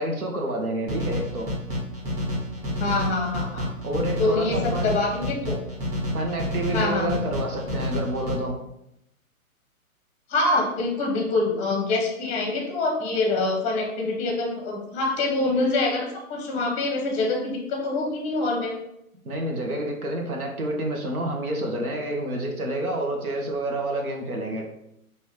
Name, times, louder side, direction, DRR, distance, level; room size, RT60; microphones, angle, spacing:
voice 1, 0.0-1.5 3.8-4.9 6.1-8.6 19.2-24.6, right 1 dB, 75° right, 1 dB, 1.4 m, -28 dB
sound 1, 0.9-8.4, left 1 dB, 30° right, 1.5 m, -29 dB
voice 2, 2.8-3.7 4.2-5.6 6.7-7.2 10.3-18.7, left 2 dB, 15° left, 1 dB, 0.8 m, -25 dB
5.3 x 3.0 x 3.3 m, 0.81 s
hypercardioid pair, 140°, 43 cm